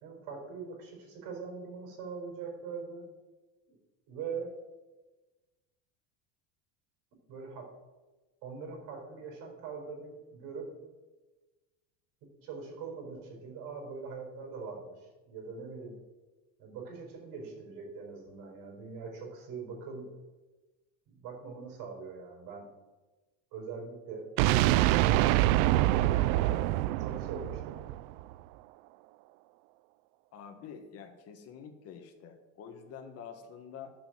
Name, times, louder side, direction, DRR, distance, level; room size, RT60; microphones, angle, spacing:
voice 1, 0.0-3.0 3.7-3.8 4.1-4.5 7.3-7.7 8.4-10.7 12.4-16.0 16.6-20.1 21.1-22.7 23.5-24.3 24.9-26.7 27.0-27.8, right 5 dB, 50° right, 0 dB, 4.8 m, -42 dB
sound 1, 24.4-28.3, right 15 dB, 75° right, 0.5 m, -25 dB
voice 2, 30.3-33.9, left 7 dB, 35° left, 6 dB, 1.5 m, -47 dB
11.5 x 6.9 x 7.5 m, 1.2 s
cardioid pair, 165°, 41 cm